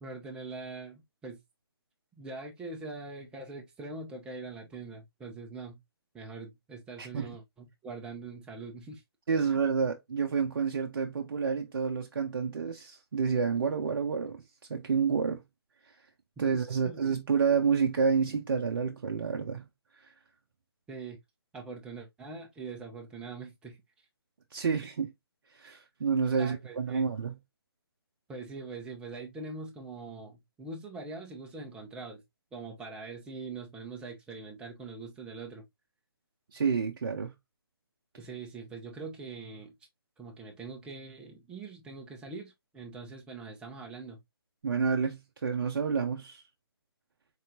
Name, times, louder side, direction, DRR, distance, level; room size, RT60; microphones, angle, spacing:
voice 1, 0.0-1.4 2.2-5.8 6.1-9.0 9.4-9.5 16.8-17.0 20.9-21.2 21.5-23.8 24.6-24.8 26.3-27.1 28.3-32.2 32.5-35.6 38.2-39.7 40.2-44.2, right 3 dB, 5° right, 0.9 m, -43 dB
voice 2, 7.0-7.3 9.3-14.4 14.7-15.4 16.4-19.6 20.0-20.1 24.5-25.1 25.5-27.3 36.5-37.3 44.6-46.4, right 6 dB, 55° right, 0.7 m, -29 dB
4.2 x 4.0 x 2.5 m
figure-of-eight pair, 140°, 13 cm